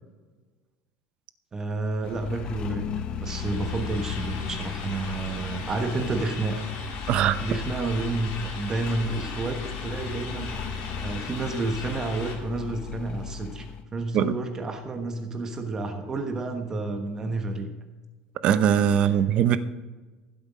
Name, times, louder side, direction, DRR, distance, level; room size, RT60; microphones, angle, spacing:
voice 1, 1.5-2.8 3.2-6.6 7.4-17.7, right 3 dB, 20° right, 5 dB, 1.1 m, -30 dB
sound 1, 2.0-13.8, left 7 dB, 35° left, 1.0 m, -36 dB
sound 2, 3.2-12.4, left 4 dB, 55° left, 3.0 m, -39 dB
voice 2, 7.1-7.4 14.1-14.3 18.4-19.6, right 9 dB, 40° right, 13 dB, 0.7 m, -21 dB
15.5 x 8.0 x 5.1 m, 1.3 s
cardioid pair, 150°, 3 cm